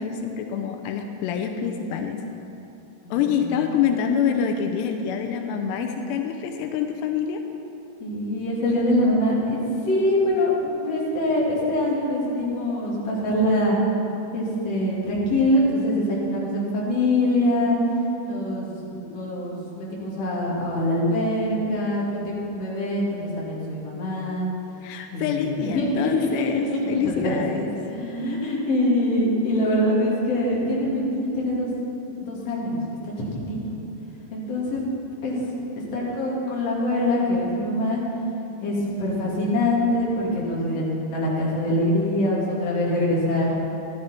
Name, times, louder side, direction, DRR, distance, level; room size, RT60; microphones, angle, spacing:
voice 1, 0.0-2.2 3.1-7.4 24.8-27.7, left 7 dB, 85° left, 4 dB, 2.9 m, -26 dB
voice 2, 3.0-3.6 8.0-9.6 9.8-13.8 14.3-17.8 18.2-24.5 25.1-26.4 26.7-31.7 32.2-33.8 34.3-34.9 35.2-35.4 35.8-38.0 38.6-43.5, left 1 dB, 45° left, -5 dB, 3.1 m, -24 dB
14.0 x 12.0 x 4.4 m, 2.9 s
omnidirectional pair, 4.7 m